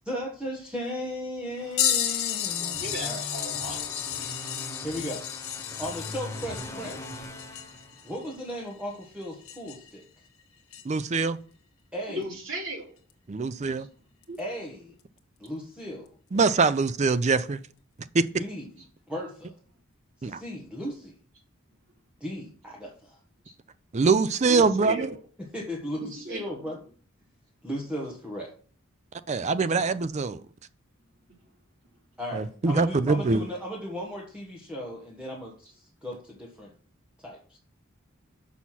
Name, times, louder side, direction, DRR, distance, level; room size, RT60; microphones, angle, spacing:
voice 1, 0.0-3.2 4.8-5.2 5.8-7.3 8.0-10.0 11.9-12.2 14.4-14.9 15.4-16.1 18.4-18.7 19.1-19.5 20.2-21.1 22.2-23.2 25.5-26.8 27.6-28.5 32.2-36.7 37.2-37.6, equal, 5° right, 1.4 m, -36 dB
sound 1, 1.5-8.4, left 1 dB, 15° left, 0.7 m, -41 dB
sound 2, 1.8-10.0 10.7-10.8 13.1-13.2 14.2-14.4 15.5-15.6, left 10 dB, 80° left, 1.2 m, -32 dB
voice 2, 2.6-4.0 12.1-13.0 13.8-13.9 14.3-14.4 23.4-23.5 24.5-25.1 25.9-26.6, right 1 dB, 65° right, 2.8 m, -36 dB
voice 3, 10.8-11.4 13.3-13.9 16.3-17.6 18.1-18.3 20.2-20.4 23.9-25.1 29.3-30.4 32.3-33.5, right 4 dB, 35° right, 0.4 m, -23 dB
6.3 x 5.6 x 5.8 m
head